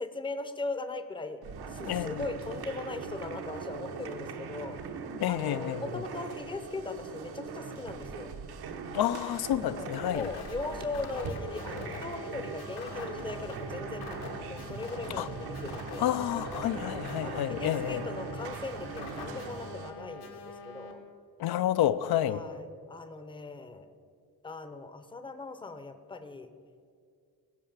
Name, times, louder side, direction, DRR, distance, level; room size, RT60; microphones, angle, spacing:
voice 1, 0.0-1.4 1.7-4.7 5.3-8.3 9.6-16.1 16.7-21.0 22.3-23.9 24.4-26.5, left 3 dB, 15° left, 10 dB, 0.6 m, -39 dB
sound 1, 1.4-19.9, right 5 dB, 75° right, 1.1 m, -41 dB
voice 2, 1.9-2.2 5.2-6.0 8.9-10.3 15.2-15.3 16.0-18.1 21.4-22.4, left 11 dB, 75° left, 12 dB, 0.5 m, -29 dB
sound 2, 10.0-20.9, left 4 dB, 90° left, 2.1 m, -44 dB
16.5 x 5.6 x 7.3 m, 2.2 s
cardioid pair, 145°, 38 cm